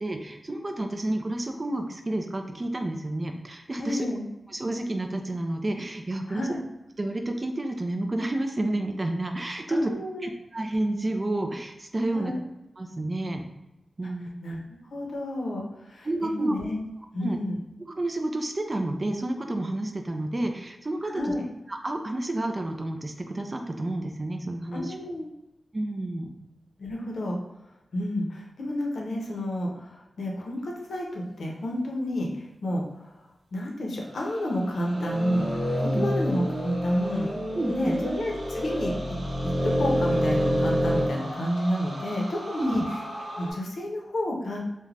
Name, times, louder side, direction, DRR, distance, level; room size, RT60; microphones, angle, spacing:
voice 1, 0.0-4.1 4.5-6.5 7.0-9.9 10.2-12.3 12.8-13.4 14.0-14.3 16.0-16.5 17.2-17.4 17.9-21.3 21.7-24.9 25.7-26.3 35.8-36.1 37.5-38.0 42.6-42.9, right 1 dB, 30° right, 4 dB, 0.3 m, -30 dB
voice 2, 3.8-4.2 6.3-6.6 9.7-10.3 12.1-12.4 14.4-16.9 17.1-17.6 21.0-21.4 24.7-25.3 26.8-27.4 27.9-32.8 33.5-39.0 39.6-42.8 43.4-44.6, left 1 dB, 85° left, -1 dB, 0.6 m, -30 dB
sound 1, 34.0-43.5, equal, 70° right, 0.9 m, -41 dB
sound 2, 34.9-41.1, equal, 15° left, 1.0 m, -27 dB
2.4 x 2.1 x 3.2 m, 0.96 s
wide cardioid pair, 125°, 0 cm